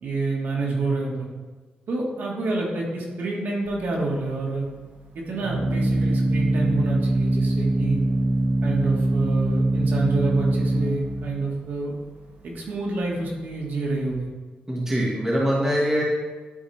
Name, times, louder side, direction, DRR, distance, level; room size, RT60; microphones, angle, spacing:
voice 1, 0.0-1.3 1.9-4.7 5.2-8.1 8.6-11.9 12.4-14.3, right 3 dB, 70° right, -2 dB, 1.8 m, -28 dB
Organ, 3.7-14.1, right 1 dB, 55° right, 1.1 m, -24 dB
voice 2, 14.7-16.0, equal, 15° right, -6 dB, 1.8 m, -23 dB
11.5 x 4.1 x 3.4 m, 1.4 s
cardioid pair, 110°, 3 cm